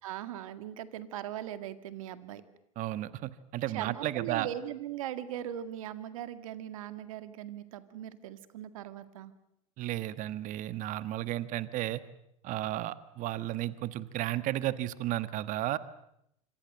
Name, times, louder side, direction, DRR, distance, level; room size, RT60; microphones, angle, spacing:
voice 1, 0.0-2.4 3.7-9.3, right 11 dB, 75° right, 11 dB, 2.1 m, -39 dB
voice 2, 2.8-4.5 9.8-12.0 12.4-15.8, right 14 dB, 50° right, 14 dB, 1.4 m, -33 dB
26.0 x 24.5 x 7.9 m, 0.77 s
hypercardioid pair, 95°, 17 cm